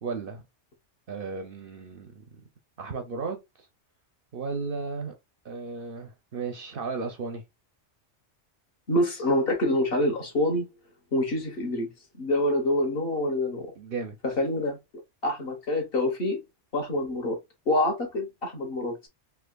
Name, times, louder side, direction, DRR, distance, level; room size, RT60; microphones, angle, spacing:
voice 1, 0.0-0.4 1.1-2.4 2.8-3.7 4.3-5.1 5.4-7.4 13.8-14.2, right 4 dB, 60° right, 0.7 m, -35 dB
voice 2, 8.9-10.7 11.1-11.9 12.2-13.7 14.2-14.8 15.2-16.4 16.7-17.4 17.7-19.1, left 1 dB, 55° left, 1.2 m, -26 dB
3.4 x 2.7 x 2.2 m
omnidirectional pair, 1.2 m